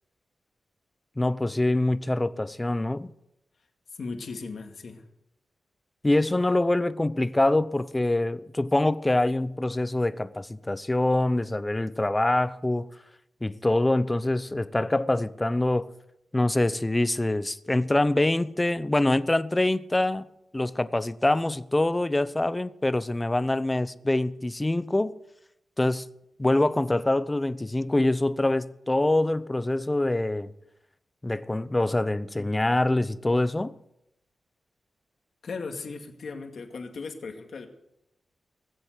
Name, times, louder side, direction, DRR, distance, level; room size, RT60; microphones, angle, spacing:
voice 1, 1.2-3.1 6.0-12.9 13.4-15.9 16.3-20.3 20.5-25.1 25.8-26.1 26.4-30.5 31.2-33.7, left 1 dB, 15° left, 0.7 m, -25 dB
voice 2, 4.0-5.0 35.4-37.7, left 4 dB, 60° left, 2.2 m, -37 dB
19.5 x 7.8 x 8.1 m
wide cardioid pair, 100°, 0 cm